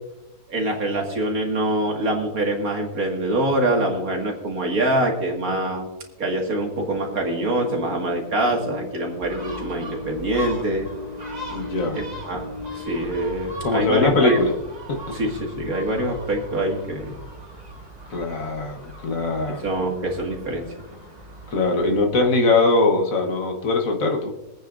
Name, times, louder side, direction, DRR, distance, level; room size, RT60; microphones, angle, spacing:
voice 1, 0.5-5.9 6.2-10.9 11.9-14.4 15.1-17.2 19.5-20.6, right 1 dB, 65° right, 0 dB, 2.4 m, -25 dB
sound 1, 6.7-12.9, left 2 dB, 80° left, 2.9 m, -37 dB
Gull seagull, 9.2-22.0, right 1 dB, 25° right, 2.0 m, -40 dB
voice 2, 11.5-12.0 13.6-14.5 14.9-15.2 18.1-19.6 21.5-24.3, left 3 dB, 60° left, 3 dB, 1.7 m, -21 dB
24.0 x 9.1 x 2.6 m, 1.0 s
omnidirectional pair, 1.6 m